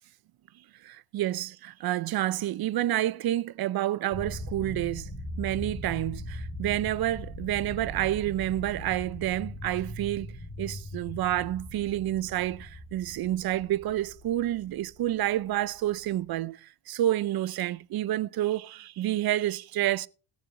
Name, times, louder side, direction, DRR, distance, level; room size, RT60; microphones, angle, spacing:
voice 1, 0.8-5.1 5.4-16.6 16.9-20.1, right 13 dB, 50° right, 0.5 m, -29 dB
sound 1, 4.1-16.3, equal, 25° left, 5.0 m, -40 dB
17.0 x 7.2 x 3.7 m
cardioid pair, 115°, 47 cm